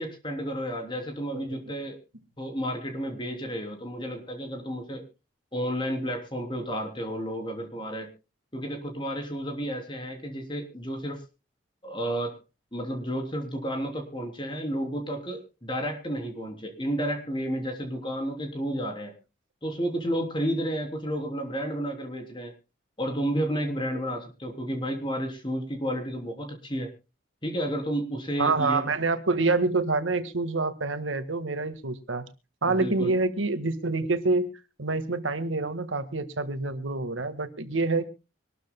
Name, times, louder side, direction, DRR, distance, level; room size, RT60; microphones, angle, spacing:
voice 1, 0.0-2.0 2.4-5.0 5.5-8.1 8.5-11.2 11.8-12.4 12.7-19.1 19.6-22.5 23.0-26.9 27.4-28.9 32.7-33.1, equal, 25° left, 4 dB, 3.3 m, -31 dB
voice 2, 28.4-32.2 32.6-34.5 34.8-38.0, right 3 dB, 90° right, 10 dB, 1.6 m, -26 dB
25.0 x 13.0 x 2.2 m, 0.29 s
head